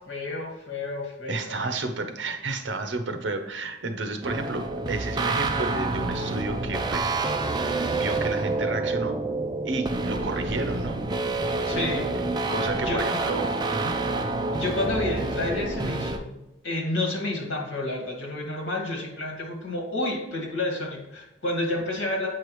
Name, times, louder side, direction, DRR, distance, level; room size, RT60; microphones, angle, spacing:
voice 1, 0.1-1.6 11.7-12.2 12.4-12.5 12.8-13.2 14.5-16.3 16.6-22.3, left 2 dB, 85° left, 1 dB, 1.8 m, -30 dB
voice 2, 1.3-7.1 7.6-9.2 9.6-11.0 12.5-14.0, right 3 dB, 70° right, 7 dB, 0.7 m, -31 dB
sound 1, 4.2-16.2, right 3 dB, 20° right, 0.3 m, -28 dB
7.6 x 4.7 x 3.1 m, 0.92 s
head